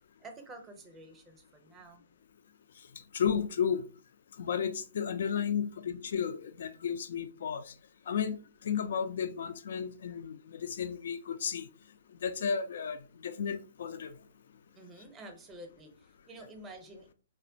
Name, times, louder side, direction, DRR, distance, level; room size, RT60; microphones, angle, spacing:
voice 1, 0.2-2.0 14.8-17.1, right 2 dB, 15° right, 0.6 m, -49 dB
voice 2, 3.1-3.8 4.4-7.7 8.1-8.4 8.6-11.7 12.2-13.0 13.2-14.1, left 7 dB, 60° left, 0.3 m, -33 dB
3.2 x 2.0 x 2.6 m
figure-of-eight pair, 125°, 0 cm